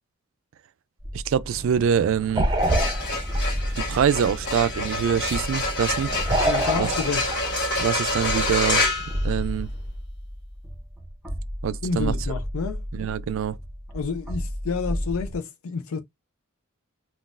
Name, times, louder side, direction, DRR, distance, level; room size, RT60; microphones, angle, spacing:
sound 1, 1.0-15.4, equal, 5° right, 0.9 m, -33 dB
voice 1, 1.1-2.5 3.8-6.1 6.8-6.9 7.8-8.9 9.2-9.7 11.6-12.1 12.9-13.6, right 8 dB, 65° right, 0.3 m, -24 dB
sound 2, 1.4-9.8, right 1 dB, 20° right, 0.6 m, -30 dB
sound 3, 2.5-9.9, left 2 dB, 55° left, 1.2 m, -27 dB
voice 2, 6.5-7.3 11.8-12.9 13.9-16.0, left 5 dB, 80° left, 0.5 m, -29 dB
3.9 x 2.3 x 2.4 m
head